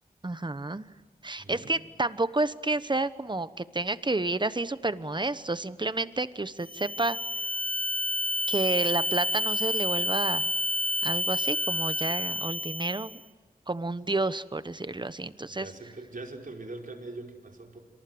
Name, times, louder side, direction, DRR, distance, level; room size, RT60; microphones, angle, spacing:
voice 1, 0.2-0.9 1.2-7.2 8.5-10.5 11.0-13.2 13.7-15.7, right 2 dB, 30° right, 14 dB, 1.1 m, -30 dB
voice 2, 1.4-1.8 15.5-17.8, right 2 dB, 65° right, 2 dB, 5.0 m, -42 dB
sound 1, 6.6-13.2, equal, 10° left, 1.1 m, -29 dB
26.5 x 26.5 x 7.8 m, 1.3 s
wide cardioid pair, 70°, 15 cm